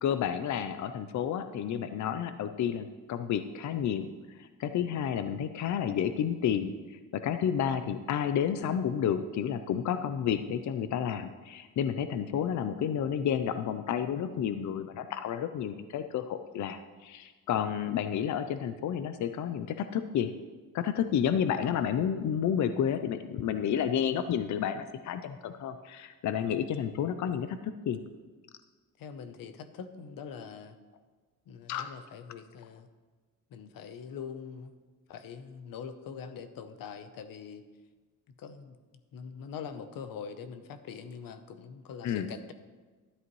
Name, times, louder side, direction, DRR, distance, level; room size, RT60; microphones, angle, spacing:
voice 1, 0.0-4.1 4.4-20.3 20.7-28.0 31.7-31.9 42.0-42.3, left 8 dB, 60° left, 10 dB, 0.5 m, -31 dB
voice 2, 29.0-30.8 31.5-32.9 33.5-34.8 35.1-37.6 38.4-38.8 39.1-42.5, left 6 dB, 90° left, 10 dB, 0.8 m, -43 dB
12.5 x 11.0 x 3.1 m, 1.3 s
wide cardioid pair, 155°, 33 cm